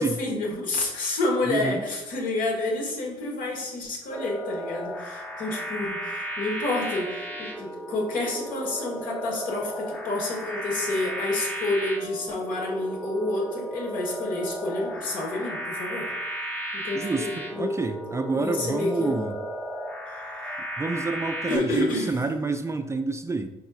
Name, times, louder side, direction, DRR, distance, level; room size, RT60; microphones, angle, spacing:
voice 1, 0.0-16.1 16.7-19.3 21.5-22.1, left 2 dB, 60° left, -2 dB, 1.4 m, -29 dB
voice 2, 1.5-1.8 16.9-19.4 20.8-23.5, right 3 dB, 20° right, 6 dB, 0.4 m, -28 dB
sound 1, 4.1-21.6, equal, 10° left, 0.9 m, -34 dB
4.5 x 4.1 x 2.4 m, 0.97 s
hypercardioid pair, 55°, 15 cm